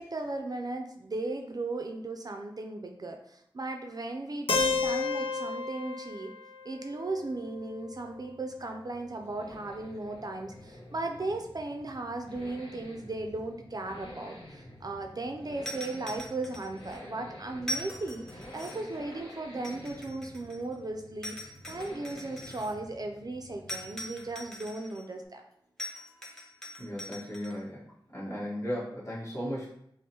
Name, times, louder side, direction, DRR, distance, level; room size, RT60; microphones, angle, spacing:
voice 1, 0.0-6.3 6.6-25.4, right 2 dB, 45° right, 4 dB, 0.4 m, -36 dB
Keyboard (musical), 4.5-8.4, left 4 dB, 90° left, 0.4 m, -32 dB
sound 1, 6.8-24.8, left 1 dB, 70° left, 1.1 m, -50 dB
sound 2, 15.6-17.0 17.6-19.0 19.6-20.7 21.2-22.7 23.7-25.0 25.8-27.5, left 1 dB, 5° left, 0.8 m, -41 dB
voice 2, 26.8-27.8 28.1-29.7, equal, 35° left, -7 dB, 1.5 m, -36 dB
5.2 x 2.1 x 2.8 m, 0.74 s
wide cardioid pair, 55°, 9 cm